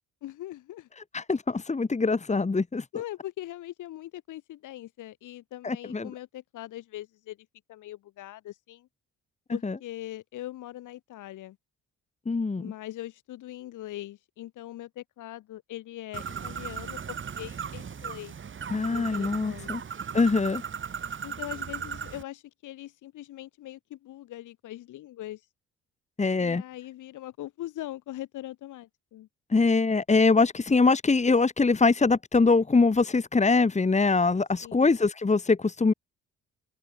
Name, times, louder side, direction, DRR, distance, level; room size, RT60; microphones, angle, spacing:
voice 1, 0.2-0.9 2.9-7.4 7.7-8.9 9.5-11.6 12.5-18.3 18.9-19.8 21.2-25.4 26.4-29.3 34.6-34.9, left 14 dB, 85° left, 4.0 m, -41 dB
voice 2, 1.1-2.8 5.6-6.1 9.6-9.7 12.3-12.6 18.7-19.8 20.1-20.6 26.2-26.6 29.5-35.9, left 4 dB, 25° left, 2.4 m, -23 dB
Bird, 16.1-22.2, right 7 dB, 40° right, 1.9 m, -37 dB
cardioid pair, 90°, 30 cm